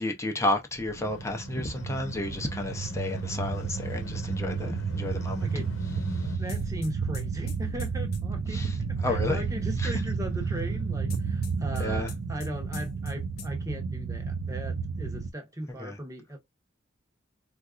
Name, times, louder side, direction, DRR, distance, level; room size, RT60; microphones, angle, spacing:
voice 1, 0.0-5.5 6.1-6.4 8.5-9.4 9.8-9.9 11.7-12.1 15.8-16.0, left 2 dB, 15° left, 0.5 m, -32 dB
sound 1, 0.8-15.3, right 5 dB, 80° right, 0.5 m, -32 dB
sound 2, 0.9-6.4, left 1 dB, 85° left, 0.8 m, -42 dB
voice 2, 5.4-5.7 6.4-16.4, equal, 15° right, 0.8 m, -38 dB
sound 3, 6.5-8.2 11.1-12.5 12.7-13.1 13.4-13.5, left 3 dB, 50° left, 0.8 m, -43 dB
3.9 x 2.4 x 2.4 m
head